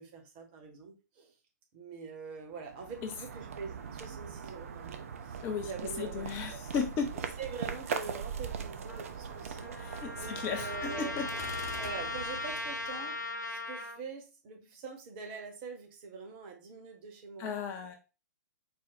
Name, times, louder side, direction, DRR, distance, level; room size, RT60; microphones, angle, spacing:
voice 1, 0.0-1.3 1.7-6.6 7.4-11.2 11.8-13.2 13.5-17.6, right 5 dB, 35° right, 3 dB, 1.1 m, -44 dB
sound 1, 2.5-13.2, right 6 dB, 50° right, 0.6 m, -41 dB
voice 2, 6.0-7.1 9.8-11.3 17.4-18.0, left 6 dB, 25° left, 5 dB, 0.6 m, -35 dB
Trumpet, 8.9-14.0, left 2 dB, 80° left, 0.6 m, -39 dB
Gunshot gunfire, 11.3-12.5, left 6 dB, 55° left, 0.9 m, -46 dB
4.3 x 2.2 x 4.0 m, 0.30 s
figure-of-eight pair, 115°, 9 cm